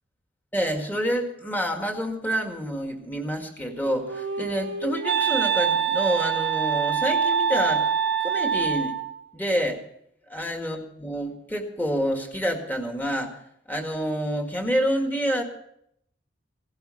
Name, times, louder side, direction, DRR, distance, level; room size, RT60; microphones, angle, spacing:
voice 1, 0.5-7.9 8.2-9.0 9.3-9.8 10.3-13.4 13.7-15.4, equal, 10° left, 4 dB, 1.8 m, -28 dB
Wind instrument woodwind instrument, 3.7-9.1, right 7 dB, 70° right, 1.2 m, -25 dB
17.0 x 11.5 x 5.7 m, 0.73 s
head